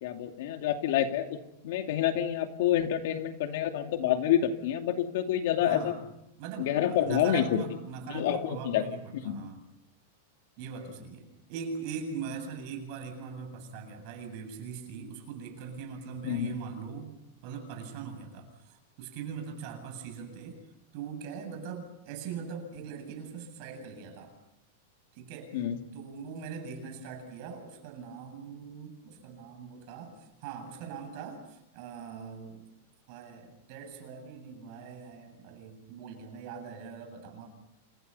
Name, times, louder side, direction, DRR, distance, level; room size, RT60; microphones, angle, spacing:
voice 1, 0.0-1.2 1.6-5.9 6.6-7.6 8.1-8.8 9.2-9.5 16.2-16.5 25.5-25.8, left 11 dB, 55° left, 5 dB, 2.6 m, -28 dB
voice 2, 5.6-6.0 6.4-9.6 10.6-17.1 17.4-20.6 20.9-24.3 25.1-25.6 25.9-32.7 33.1-37.5, right 6 dB, 40° right, 6 dB, 7.6 m, -41 dB
29.0 x 29.0 x 5.7 m, 0.81 s
supercardioid pair, 170°, 0 cm